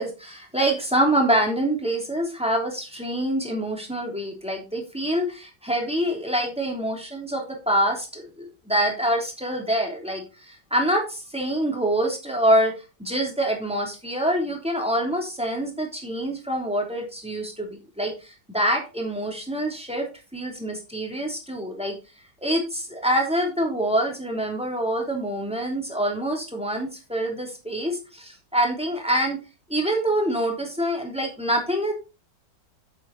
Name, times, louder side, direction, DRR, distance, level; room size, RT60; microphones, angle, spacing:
voice 1, 0.0-12.7 13.0-20.1 20.3-22.0 22.4-29.4 29.7-31.9, right 1 dB, 5° right, 1 dB, 3.0 m, -25 dB
9.2 x 8.0 x 4.1 m, 0.30 s
omnidirectional pair, 1.9 m